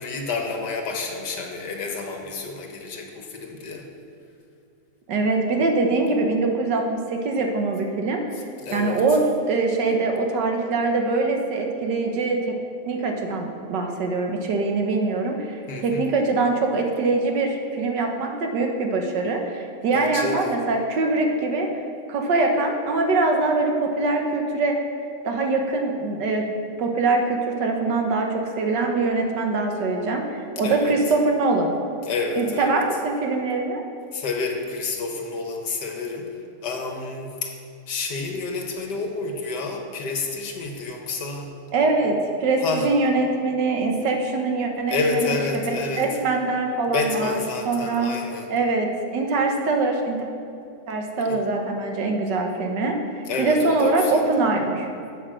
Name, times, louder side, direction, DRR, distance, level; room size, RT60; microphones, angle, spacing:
voice 1, 0.0-3.9 8.6-9.0 15.7-16.1 19.9-20.5 30.6-30.9 32.0-32.8 34.1-36.3 36.6-37.5 37.9-41.6 42.6-42.9 44.9-46.0 46.9-48.5 51.3-51.4 53.3-54.3, left 4 dB, 75° left, 2 dB, 1.8 m, -29 dB
voice 2, 5.1-8.2 8.7-9.2 9.5-12.6 12.9-21.7 22.1-24.7 25.2-26.5 26.8-31.7 32.3-33.8 41.7-48.1 48.5-50.3 50.9-54.9, right 3 dB, 85° right, 2 dB, 1.8 m, -23 dB
8.5 x 7.7 x 6.4 m, 2.5 s
omnidirectional pair, 1.8 m